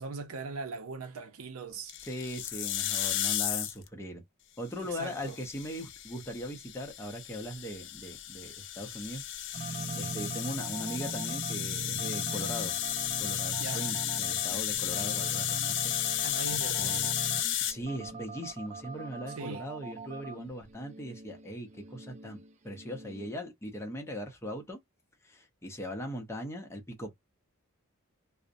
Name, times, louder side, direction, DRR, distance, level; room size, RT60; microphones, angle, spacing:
voice 1, 0.0-1.9 4.9-5.4 13.6-13.8 16.2-17.2 19.4-19.7, right 4 dB, 75° right, 0.6 m, -40 dB
sound 1, 1.9-3.9 4.9-17.7, left 11 dB, 60° left, 0.4 m, -33 dB
voice 2, 2.0-4.2 4.6-9.2 9.5-12.8 13.2-16.2 16.5-17.1 17.7-24.8 25.2-27.2, equal, 15° left, 0.6 m, -40 dB
sound 2, 9.5-23.3, right 4 dB, 35° right, 0.3 m, -41 dB
2.5 x 2.0 x 2.5 m
head